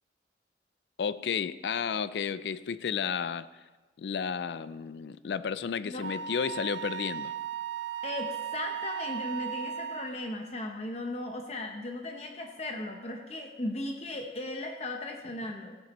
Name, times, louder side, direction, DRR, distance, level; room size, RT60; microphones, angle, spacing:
voice 1, 1.0-3.5 4.0-7.3, left 6 dB, 70° left, 15 dB, 0.4 m, -32 dB
Wind instrument woodwind instrument, 6.0-10.2, right 8 dB, 85° right, 0.5 m, -36 dB
voice 2, 8.0-15.8, left 1 dB, 35° left, 3 dB, 0.8 m, -37 dB
16.5 x 10.5 x 3.0 m, 1.3 s
head